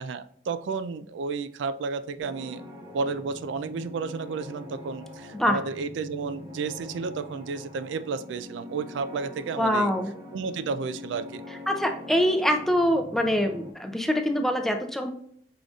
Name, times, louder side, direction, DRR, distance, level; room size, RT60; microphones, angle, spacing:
voice 1, 0.0-2.6 2.9-9.9 10.3-11.4, right 4 dB, 75° right, 12 dB, 0.3 m, -32 dB
sound 1, 2.2-13.7, left 1 dB, 20° right, 1.1 m, -43 dB
voice 2, 9.6-10.1 11.7-15.1, equal, ahead, 5 dB, 0.4 m, -24 dB
5.0 x 3.9 x 2.3 m, 0.65 s
head